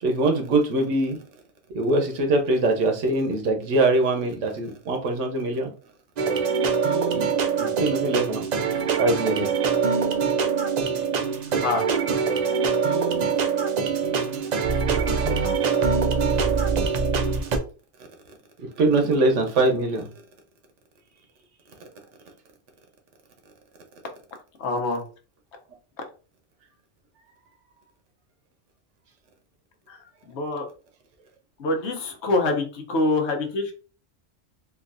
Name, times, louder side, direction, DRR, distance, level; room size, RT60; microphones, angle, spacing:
voice 1, 0.0-1.2 1.7-5.7 7.1-7.3 7.6-9.5 11.2-11.5 14.0-14.4 16.3-16.4 18.6-20.1, right 2 dB, 85° right, 4 dB, 1.1 m, -23 dB
sound 1, 6.2-17.6, right 5 dB, 55° right, 0.5 m, -24 dB
voice 2, 11.5-11.9 24.6-25.0 29.9-30.7 31.6-33.7, left 2 dB, 70° left, 4 dB, 1.0 m, -25 dB
3.8 x 2.4 x 2.5 m, 0.36 s
omnidirectional pair, 1.2 m